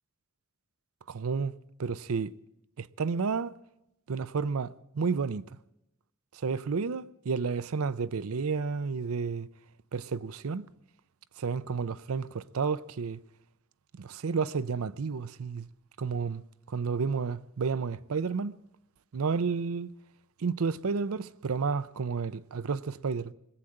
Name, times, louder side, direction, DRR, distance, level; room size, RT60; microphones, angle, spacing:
voice 1, 1.1-1.5 1.8-2.3 2.8-3.5 4.1-5.5 6.3-9.5 9.9-10.7 11.4-13.2 14.0-15.7 16.0-18.6 19.1-19.9 20.4-23.3, right 5 dB, 75° right, 0.5 m, -31 dB
20.5 x 7.9 x 8.6 m
head